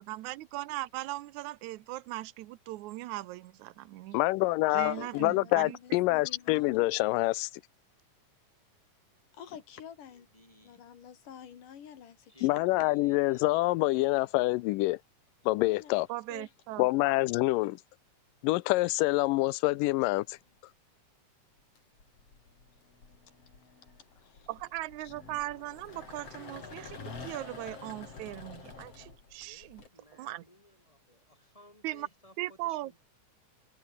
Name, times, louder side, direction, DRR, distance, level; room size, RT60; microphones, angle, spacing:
voice 1, 0.0-4.2 4.7-5.8 16.1-16.9 24.5-29.8 30.1-30.4 31.8-32.1 32.4-32.9, right 17 dB, 75° right, 2.0 m, -39 dB
voice 2, 4.1-7.5 12.4-15.0 15.5-16.1 16.8-17.8 18.4-20.4, left 20 dB, 85° left, 2.2 m, -26 dB
voice 3, 4.7-6.9 9.3-10.3 10.6-12.9 15.6-16.0 16.3-16.5 24.1-24.5 25.0-25.1, left 8 dB, 70° left, 3.9 m, -49 dB
voice 4, 10.1-10.9 12.3-13.6 29.4-33.0, left 1 dB, 10° left, 7.7 m, -59 dB
sound 1, 20.1-20.5 21.6-29.9, left 4 dB, 45° left, 5.4 m, -48 dB
omnidirectional pair, 3.9 m